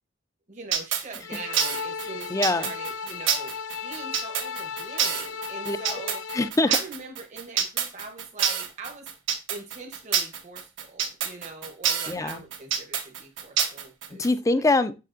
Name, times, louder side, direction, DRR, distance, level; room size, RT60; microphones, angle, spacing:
voice 1, 0.5-3.5 3.8-6.2 6.7-9.1 9.5-14.3 14.6-14.8, right 3 dB, 40° right, 0.9 m, -42 dB
sound 1, 0.7-14.3, right 7 dB, 80° right, 1.2 m, -27 dB
sound 2, 1.2-6.5, left 6 dB, 75° left, 0.6 m, -35 dB
voice 2, 2.3-2.7 5.7-5.9 6.3-6.8 12.1-12.4 14.1-15.0, left 2 dB, 15° left, 0.4 m, -24 dB
6.8 x 6.8 x 2.5 m
head